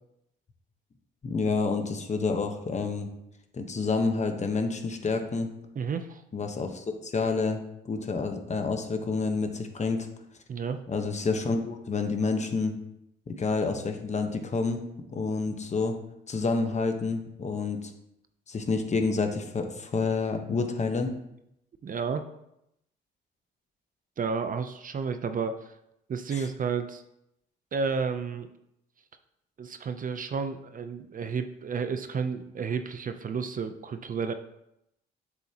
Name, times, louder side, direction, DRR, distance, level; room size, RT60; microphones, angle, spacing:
voice 1, 1.2-3.1 3.5-5.5 6.3-7.6 7.8-10.1 10.9-12.8 13.3-14.8 15.1-15.9 16.3-17.9 18.5-21.1 26.3-26.5, left 4 dB, 35° left, 5 dB, 1.2 m, -28 dB
voice 2, 5.8-6.2 10.5-10.8 21.8-22.2 24.2-25.7 26.1-27.0 27.7-28.5 29.6-34.3, right 5 dB, 45° right, 9 dB, 0.7 m, -31 dB
8.0 x 7.0 x 2.9 m, 0.81 s
cardioid pair, 90°, 20 cm